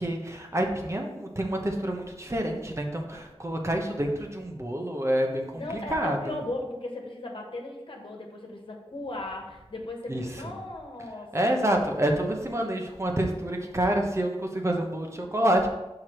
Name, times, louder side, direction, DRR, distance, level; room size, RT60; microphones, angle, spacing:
voice 1, 0.0-6.4 10.1-10.5 11.3-15.7, right 1 dB, 30° right, 2 dB, 1.0 m, -28 dB
voice 2, 5.5-11.8, left 2 dB, 60° left, 1 dB, 1.4 m, -37 dB
5.8 x 4.9 x 4.4 m, 1.0 s
wide cardioid pair, 65°, 10 cm